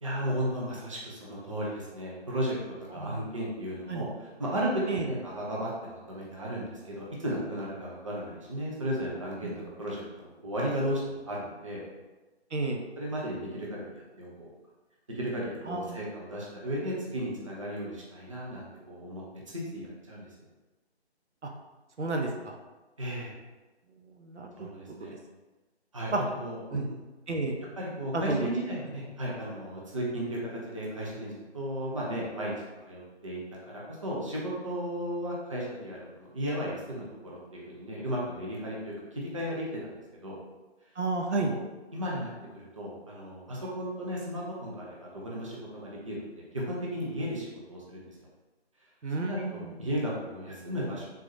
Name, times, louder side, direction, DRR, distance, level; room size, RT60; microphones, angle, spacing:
voice 1, 0.0-2.6 2.9-4.1 4.4-11.8 13.0-14.3 15.1-20.3 23.0-23.3 24.6-25.2 25.9-27.0 27.8-32.5 32.9-39.9 40.2-40.3 41.4-41.6 41.9-48.1 49.2-51.1, equal, 30° right, -5 dB, 0.6 m, -35 dB
voice 2, 2.9-3.3 3.9-4.1 4.9-5.1 9.4-9.7 12.5-12.8 15.7-16.0 21.4-21.5 22.0-22.5 24.1-24.7 25.0-25.2 26.1-26.2 26.7-26.9 27.3-27.6 28.1-28.5 41.0-41.6 49.0-49.9, right 3 dB, 90° right, 2 dB, 0.7 m, -32 dB
3.8 x 2.9 x 2.6 m, 1.2 s
figure-of-eight pair, 155°, 34 cm